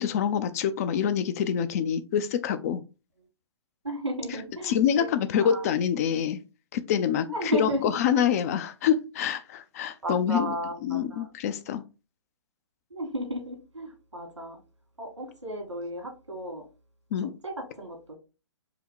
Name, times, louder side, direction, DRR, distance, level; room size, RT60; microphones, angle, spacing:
voice 1, 0.0-2.8 4.6-6.4 6.7-7.3 7.6-10.5 10.8-11.8 17.1-17.3, left 8 dB, 35° left, 12 dB, 0.4 m, -26 dB
voice 2, 3.8-5.1 5.4-5.7 7.3-7.8 10.0-11.3 12.9-14.6 15.0-16.6 17.4-18.2, right 1 dB, 85° right, 3 dB, 1.9 m, -34 dB
4.9 x 2.1 x 4.6 m, 0.30 s
figure-of-eight pair, 125°, 15 cm